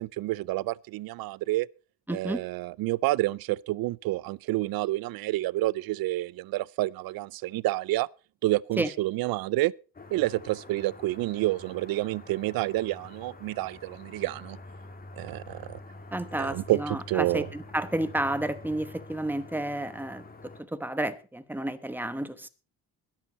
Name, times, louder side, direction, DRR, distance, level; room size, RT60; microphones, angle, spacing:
voice 1, 0.0-1.7 2.1-8.1 8.4-9.7 10.1-14.6 15.2-15.8 16.4-17.5, right 18 dB, 75° right, 0.5 m, -29 dB
voice 2, 2.1-2.4 8.8-8.9 16.1-22.5, right 1 dB, 5° right, 1.1 m, -31 dB
sound 1, 9.9-20.6, left 2 dB, 25° left, 2.0 m, -46 dB
21.0 x 7.3 x 4.2 m
cardioid pair, 120°, 36 cm